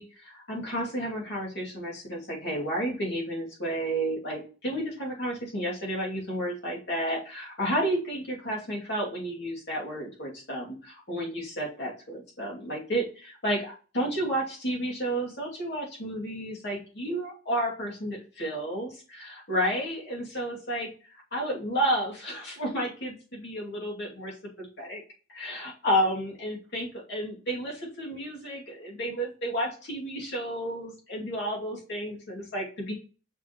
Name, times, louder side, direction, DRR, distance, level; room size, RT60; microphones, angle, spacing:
voice 1, 0.0-20.9 21.3-25.0 25.3-32.9, equal, 60° left, -3 dB, 2.7 m, -31 dB
5.8 x 5.6 x 3.1 m, 0.37 s
head